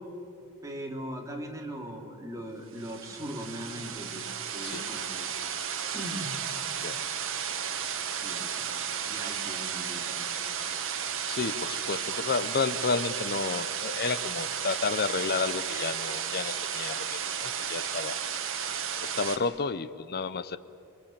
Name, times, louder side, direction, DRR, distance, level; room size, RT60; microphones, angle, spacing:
voice 1, 0.6-5.6 5.9-6.3 8.2-10.6, equal, 15° right, 0 dB, 3.4 m, -40 dB
sound 1, 2.7-19.4, right 8 dB, 60° right, 2.1 m, -33 dB
voice 2, 11.3-18.2 19.0-20.6, left 4 dB, 45° left, 14 dB, 0.8 m, -31 dB
28.5 x 23.0 x 8.9 m, 2.7 s
head